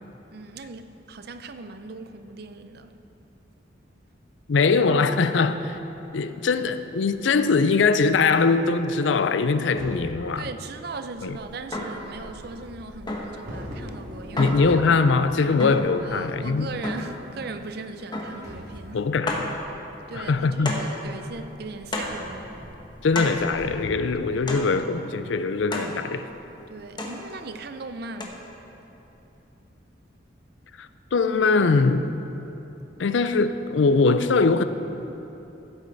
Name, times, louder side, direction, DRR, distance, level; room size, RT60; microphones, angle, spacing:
voice 1, 0.3-3.0 10.3-14.6 15.3-15.6 16.0-19.1 20.1-22.5 24.4-24.5 26.7-28.5, right 3 dB, 55° right, 0.5 m, -39 dB
voice 2, 4.5-5.8 6.1-10.5 11.2-11.4 14.4-16.7 18.9-19.5 20.1-20.7 23.0-26.3 30.8-32.1 33.0-34.6, left 4 dB, 75° left, 0.5 m, -22 dB
sound 1, 9.7-24.0, equal, 20° right, 2.1 m, -47 dB
Bird vocalization bird call bird song / Wind / Thunder, 11.2-26.9 27.5-27.6 28.0-28.4 28.8-29.4, equal, 85° right, 2.8 m, -44 dB
sound 2, 11.7-12.1 13.1-13.4 14.4-14.7 15.6-16.0 16.8-17.2 18.1-18.5 18.8-18.9 19.3-19.5 20.6-21.0 21.9-22.2 23.1-23.5 24.5-24.8 25.7-26.0 27.0-27.3 28.2-28.3, left 1 dB, 25° left, 1.0 m, -30 dB
15.0 x 8.2 x 4.0 m
head